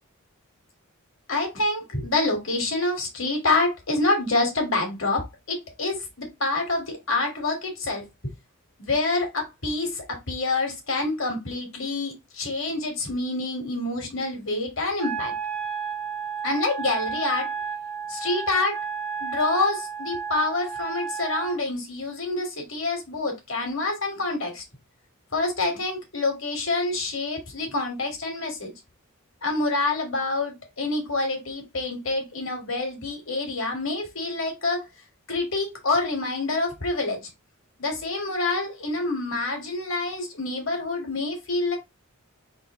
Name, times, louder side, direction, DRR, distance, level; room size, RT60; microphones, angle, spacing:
voice 1, 1.3-8.1 8.8-15.3 16.4-17.5 18.1-18.8 19.2-24.6 25.3-28.7 29.4-34.9 35.3-37.2 37.8-41.8, left 2 dB, 65° left, 1.8 m, -27 dB
Wind instrument woodwind instrument, 15.0-21.6, right 6 dB, 10° left, 0.6 m, -32 dB
3.8 x 2.9 x 3.6 m
head